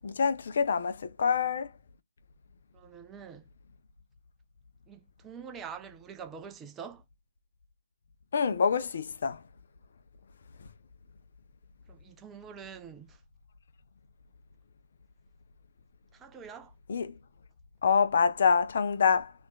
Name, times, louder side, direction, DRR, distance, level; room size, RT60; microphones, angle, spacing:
voice 1, 0.0-1.7 8.3-9.4 16.9-17.2 17.8-19.3, left 6 dB, 50° left, 0.5 m, -26 dB
voice 2, 2.7-3.5 4.9-7.0 11.9-13.2 16.1-16.7, right 7 dB, 10° right, 0.4 m, -45 dB
6.0 x 2.5 x 2.2 m
figure-of-eight pair, 145°, 0 cm